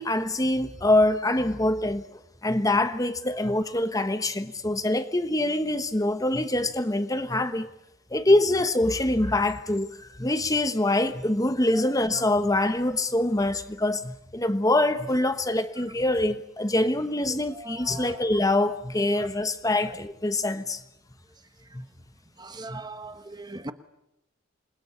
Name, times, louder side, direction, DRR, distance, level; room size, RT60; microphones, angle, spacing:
voice 1, 0.0-7.7 8.1-20.8 21.7-21.8 22.7-22.8, left 1 dB, 15° left, 1.1 m, -25 dB
voice 2, 17.5-18.2 19.2-19.3 19.8-20.0 22.4-23.7, right 2 dB, 20° right, 1.2 m, -40 dB
27.5 x 21.5 x 9.9 m
head